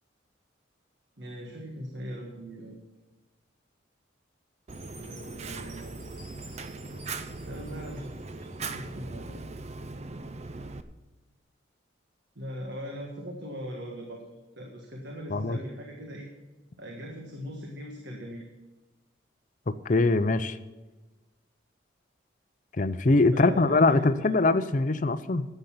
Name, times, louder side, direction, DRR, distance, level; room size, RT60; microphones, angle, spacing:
voice 1, 1.2-2.8 4.9-6.0 7.4-9.4 12.3-16.3 16.8-18.5 23.3-24.0, equal, 60° right, 0 dB, 1.6 m, -40 dB
Fire, 4.7-10.8, right 3 dB, 35° right, 0.5 m, -39 dB
Chime, 4.7-8.9, right 2 dB, 80° right, 4.4 m, -53 dB
voice 2, 19.8-20.6 22.7-25.5, left 3 dB, 40° left, 12 dB, 0.6 m, -23 dB
12.0 x 8.1 x 7.3 m, 1.1 s
head